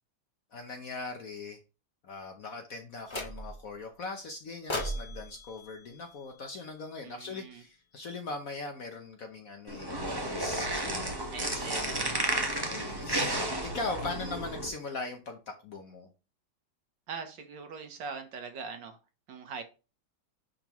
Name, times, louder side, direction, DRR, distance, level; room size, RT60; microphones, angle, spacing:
voice 1, 0.5-1.6 2.0-11.7 12.7-16.1, left 3 dB, 55° left, 4 dB, 1.0 m, -40 dB
sound 1, 3.1-3.7 4.7-6.9, left 1 dB, 30° left, 0.5 m, -38 dB
voice 2, 7.0-7.6 11.3-12.2 17.1-19.0 19.3-19.6, right 5 dB, 65° right, 6 dB, 1.6 m, -41 dB
sound 2, 9.7-14.7, right 1 dB, 20° right, 0.8 m, -32 dB
10.5 x 3.6 x 3.0 m, 0.31 s
omnidirectional pair, 2.2 m